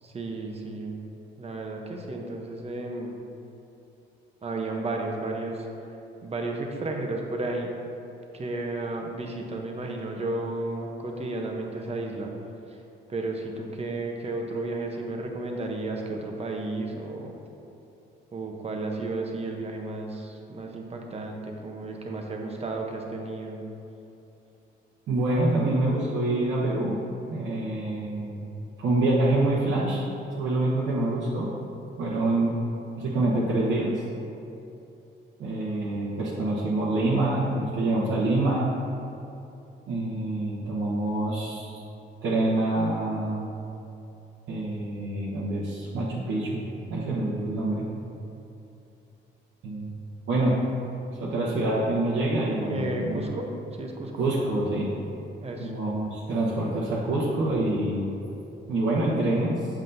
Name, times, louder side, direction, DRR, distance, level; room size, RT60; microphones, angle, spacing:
voice 1, 0.0-1.0 1.4-3.2 4.4-5.7 6.2-7.7 8.3-12.3 13.1-17.4 18.3-23.6 52.7-53.5 53.8-54.3 55.4-55.7, right 2 dB, 30° right, 1 dB, 0.8 m, -33 dB
voice 2, 25.1-27.0 27.3-28.5 28.8-30.1 30.4-31.5 32.0-32.6 33.0-34.0 35.4-38.7 39.9-41.8 42.2-43.5 44.5-47.9 49.6-50.0 50.3-50.5 51.2-53.3 54.2-54.9 55.6-58.1 58.7-59.6, right 2 dB, 70° right, -7 dB, 1.0 m, -26 dB
7.2 x 5.7 x 2.7 m, 2.8 s
cardioid pair, 90°, 20 cm